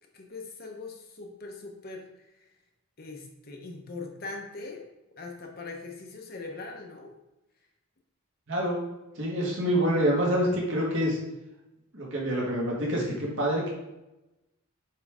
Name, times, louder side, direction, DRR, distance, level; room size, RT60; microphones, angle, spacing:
voice 1, 0.1-2.1 3.0-4.9 5.2-7.1, left 3 dB, 45° left, 2 dB, 0.9 m, -41 dB
voice 2, 8.5-8.8 9.2-11.2 11.9-13.7, equal, 55° right, -4 dB, 1.9 m, -26 dB
7.5 x 3.8 x 3.6 m, 0.95 s
head